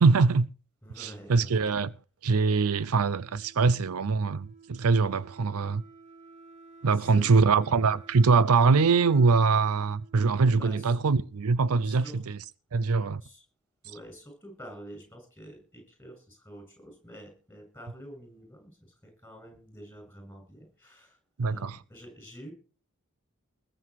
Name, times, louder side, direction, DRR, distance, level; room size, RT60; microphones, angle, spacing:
voice 1, 0.0-0.5 1.0-1.9 2.2-5.8 6.8-12.4 12.7-13.2 21.4-21.8, right 4 dB, 75° right, 0.5 m, -23 dB
voice 2, 0.8-1.6 6.9-7.5 10.5-11.0 11.8-12.2 13.2-13.4 13.8-22.5, equal, 10° left, 7.8 m, -47 dB
Wind instrument woodwind instrument, 2.6-11.3, right 4 dB, 35° right, 5.7 m, -54 dB
20.5 x 7.6 x 4.8 m
head